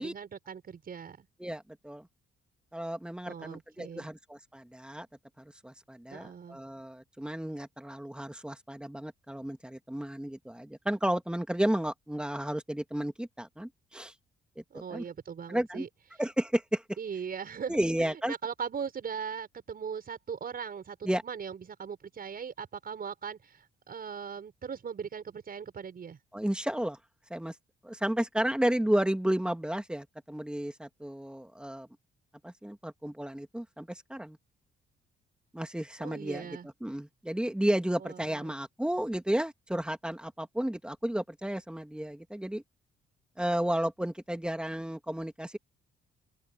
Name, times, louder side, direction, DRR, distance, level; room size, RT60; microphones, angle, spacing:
voice 1, 0.0-1.3 3.3-4.1 6.1-6.6 14.7-15.9 17.0-26.2 36.0-36.7 38.0-38.5, right 7 dB, 50° right, 5.7 m, -39 dB
voice 2, 1.4-2.1 2.7-5.1 5.4-14.1 14.6-15.0 15.5-15.8 16.2-16.8 17.7-18.3 21.0-21.2 26.3-27.0 27.3-27.5 27.8-31.9 32.4-34.4 35.5-42.6 43.4-45.6, right 1 dB, 5° right, 2.6 m, -32 dB
open air
cardioid pair, 90°, 20 cm